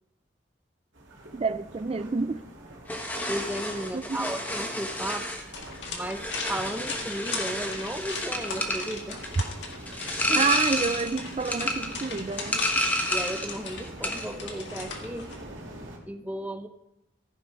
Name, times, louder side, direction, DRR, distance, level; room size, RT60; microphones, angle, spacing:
sound 1, 0.9-16.0, right 1 dB, 85° right, 2.4 m, -45 dB
voice 1, 1.3-2.4 3.9-4.3 10.3-12.6, right 4 dB, 30° right, 0.3 m, -29 dB
sound 2, 2.9-13.6 13.8-14.3, left 1 dB, 10° left, 1.1 m, -30 dB
voice 2, 3.3-5.3 5.9-6.2 6.5-9.3 13.1-15.3 16.1-16.7, right 1 dB, 10° right, 0.7 m, -34 dB
sound 3, 5.5-15.4, left 4 dB, 70° left, 1.9 m, -39 dB
14.5 x 6.1 x 5.1 m
head